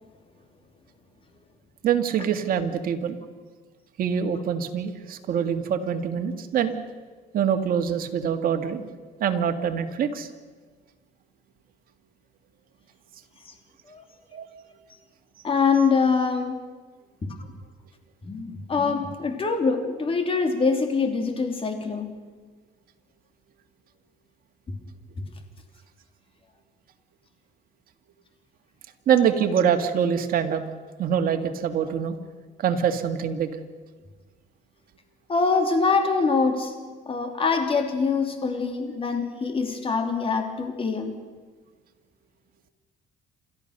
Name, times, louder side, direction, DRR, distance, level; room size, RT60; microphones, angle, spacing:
voice 1, 1.8-3.2 4.0-6.8 7.3-8.9 9.2-10.3 14.3-14.5 29.1-30.6 31.0-32.2 32.6-33.5, right 8 dB, 60° right, 6 dB, 2.0 m, -24 dB
voice 2, 15.4-16.6 18.2-22.2 35.3-36.7 37.1-41.1, left 4 dB, 30° left, 5 dB, 3.4 m, -24 dB
28.5 x 14.0 x 6.8 m, 1.4 s
cardioid pair, 110°, 17 cm